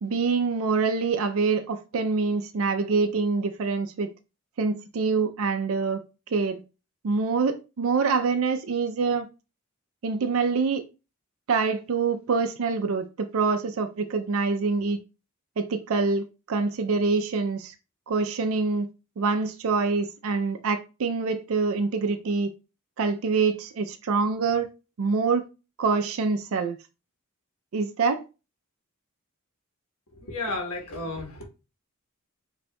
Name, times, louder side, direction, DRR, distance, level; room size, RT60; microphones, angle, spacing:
voice 1, 0.0-4.1 4.6-6.0 6.3-6.6 7.0-9.3 10.0-10.8 11.5-15.0 15.6-17.7 18.1-18.9 19.2-22.5 23.0-24.7 25.0-25.5 25.8-26.8 27.7-28.2, right 4 dB, 75° right, 0.4 m, -25 dB
voice 2, 30.1-31.5, left 2 dB, 90° left, 1.3 m, -33 dB
7.5 x 2.7 x 2.2 m
head